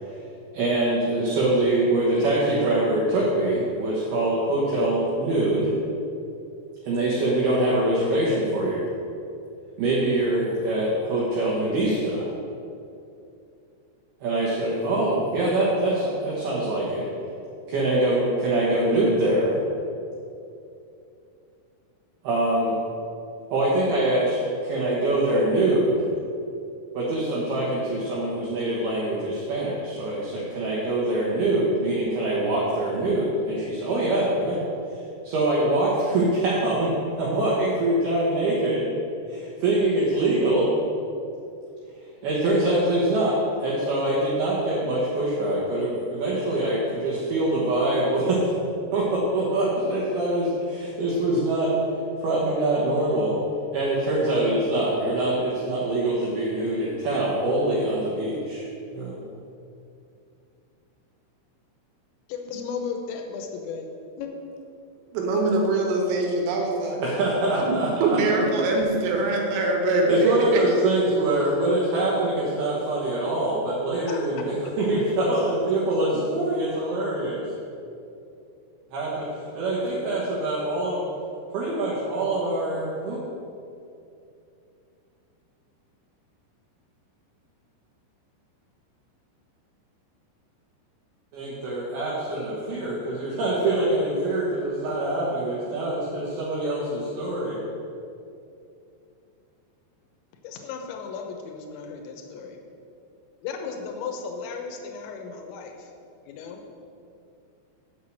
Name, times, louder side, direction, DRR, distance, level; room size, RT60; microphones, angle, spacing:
voice 1, 0.5-5.7 6.8-8.9 9.8-12.3 14.2-17.1 17.7-19.6 22.2-22.8 23.5-26.0 26.9-34.6 35.2-38.9 39.3-40.7 42.2-48.5 48.9-51.8 52.2-53.4 53.7-58.6 58.9-59.2 67.0-68.4 70.1-77.4 78.9-79.3 79.5-81.1 81.5-83.2 91.3-97.6, right 1 dB, 65° right, -6 dB, 2.8 m, -24 dB
voice 2, 62.3-63.9 64.2-64.3 74.1-74.2 100.4-102.6 103.4-105.9 106.2-106.6, left 5 dB, 75° left, 3 dB, 3.1 m, -35 dB
voice 3, 65.1-67.0 67.6-67.8 68.0-70.6, right 2 dB, 85° right, 1 dB, 4.0 m, -23 dB
8.1 x 6.6 x 7.6 m, 2.6 s
omnidirectional pair, 5.7 m